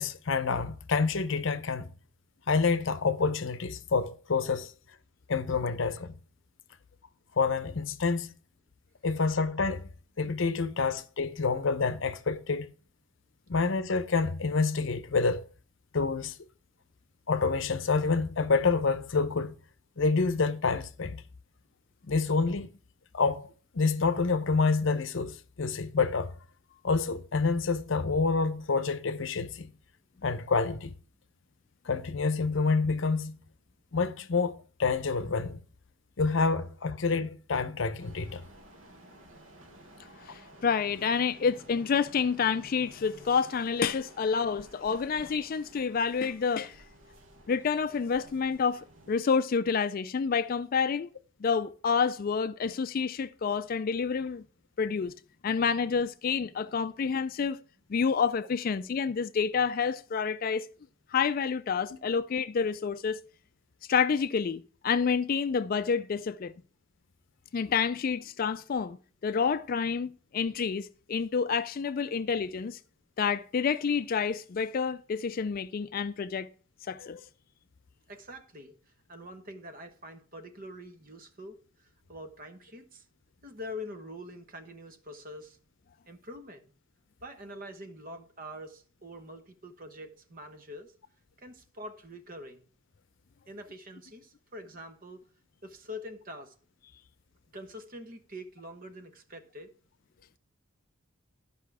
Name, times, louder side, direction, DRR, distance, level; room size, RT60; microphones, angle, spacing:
voice 1, 0.0-1.9 2.5-4.7 5.3-6.1 7.3-8.3 9.0-9.9 10.2-12.7 13.5-15.4 15.9-16.4 17.3-19.5 20.0-21.2 22.0-22.7 23.1-23.5 23.7-26.3 26.8-29.7 30.2-30.9 31.8-33.4 33.9-35.6 36.2-38.4, left 4 dB, 60° left, 0.7 m, -28 dB
sound 1, 38.0-49.2, right 1 dB, 65° right, 1.6 m, -54 dB
voice 2, 40.3-46.8 47.5-51.1 51.4-54.4 54.8-55.1 55.4-57.6 57.9-60.7 61.1-63.2 63.9-66.5 67.5-69.0 69.2-72.8 73.2-76.5 76.9-77.2, left 6 dB, 45° left, 0.3 m, -28 dB
voice 3, 78.1-83.1 83.4-85.6 86.1-86.7 87.2-90.9 91.4-92.7 93.5-95.2 95.6-96.5 97.5-99.7, left 1 dB, 40° right, 1.1 m, -45 dB
12.5 x 5.6 x 4.8 m
head